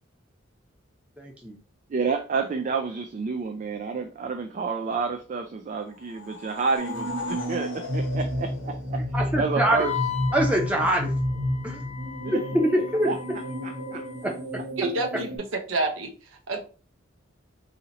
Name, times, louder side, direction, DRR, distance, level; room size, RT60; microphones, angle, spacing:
voice 1, 1.2-1.6 9.1-9.8 10.3-11.1 11.6-11.8 12.9-13.1 14.2-14.3, right 1 dB, 5° right, 0.7 m, -24 dB
voice 2, 1.9-9.0 9.3-9.9 12.2-12.5 13.0-13.2 13.6-14.3, right 4 dB, 40° right, 0.3 m, -30 dB
sound 1, 5.9-9.4, left 3 dB, 70° left, 1.1 m, -38 dB
sound 2, 6.8-15.4, equal, 55° right, 1.1 m, -31 dB
Wind instrument woodwind instrument, 9.7-14.3, left 12 dB, 35° left, 0.5 m, -37 dB
voice 3, 14.8-15.3 15.7-16.1 16.5-16.6, right 2 dB, 80° right, 0.8 m, -27 dB
2.8 x 2.7 x 3.9 m
head